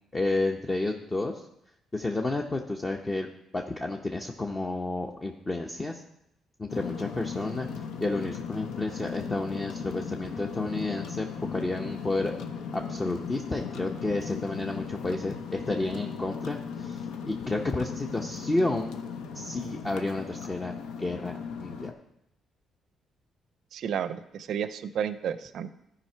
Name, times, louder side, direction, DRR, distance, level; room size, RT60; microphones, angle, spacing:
voice 1, 0.1-1.5 1.9-3.3 3.5-6.0 6.6-7.7 8.0-12.3 12.7-19.0 19.3-20.7 21.0-21.9, left 2 dB, 25° left, 2 dB, 0.7 m, -31 dB
sound 1, 6.7-21.9, left 6 dB, 90° left, 0.7 m, -37 dB
voice 2, 23.7-25.7, right 8 dB, 70° right, 13 dB, 0.5 m, -32 dB
12.5 x 5.0 x 4.5 m, 0.81 s
cardioid pair, 90°, 0 cm